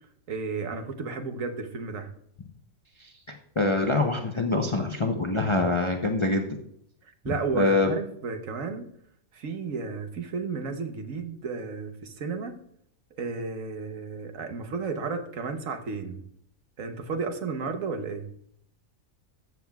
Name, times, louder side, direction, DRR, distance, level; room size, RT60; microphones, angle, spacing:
voice 1, 0.3-2.1 7.2-8.9 9.3-12.6 13.2-16.2 16.8-18.3, right 4 dB, 70° right, 7 dB, 1.4 m, -33 dB
voice 2, 3.3-6.6 7.6-7.9, left 2 dB, 30° left, 3 dB, 0.6 m, -25 dB
13.5 x 7.5 x 2.3 m, 0.66 s
omnidirectional pair, 1.4 m